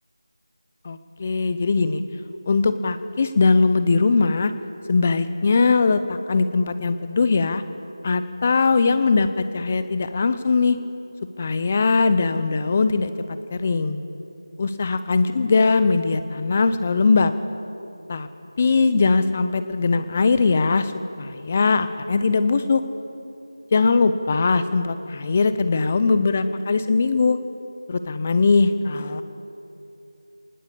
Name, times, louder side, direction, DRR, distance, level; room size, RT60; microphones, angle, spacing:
voice 1, 0.8-2.0 2.5-4.5 4.9-7.6 8.0-10.8 11.4-14.0 14.6-17.3 18.1-18.3 18.6-20.9 21.2-22.8 23.7-27.4 27.9-29.2, left 4 dB, 20° left, 12 dB, 0.6 m, -20 dB
20.0 x 19.5 x 8.5 m, 2.9 s
figure-of-eight pair, 175°, 2 cm